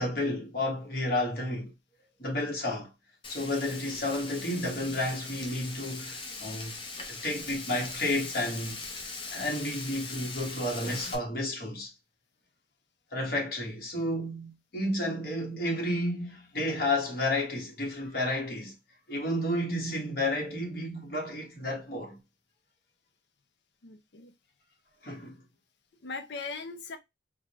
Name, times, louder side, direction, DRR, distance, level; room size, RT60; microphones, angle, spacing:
voice 1, 0.0-1.7 2.2-2.9 3.3-6.8 7.1-8.8 9.3-11.9 13.1-18.7 19.1-22.2 25.0-25.4, left 1 dB, 50° left, 1.3 m, -31 dB
Frying (food), 3.2-11.1, left 3 dB, 25° left, 0.6 m, -40 dB
voice 2, 23.8-24.3 26.0-27.0, left 4 dB, 70° left, 0.6 m, -39 dB
3.7 x 2.2 x 2.9 m
head